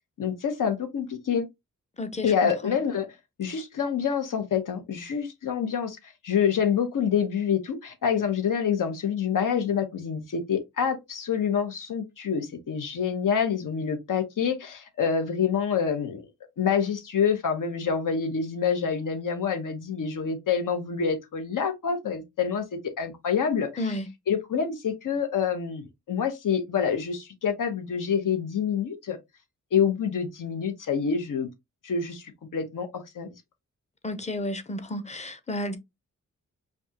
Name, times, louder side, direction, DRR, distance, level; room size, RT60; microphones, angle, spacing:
voice 1, 0.2-1.5 2.2-3.1 3.4-6.0 6.2-16.2 16.6-23.7 24.3-29.2 29.7-31.5 31.8-33.3, left 7 dB, 80° left, 1.1 m, -27 dB
voice 2, 2.0-2.8 23.8-24.1 34.0-35.8, left 1 dB, 20° left, 0.6 m, -32 dB
5.2 x 2.4 x 2.8 m
wide cardioid pair, 135°, 31 cm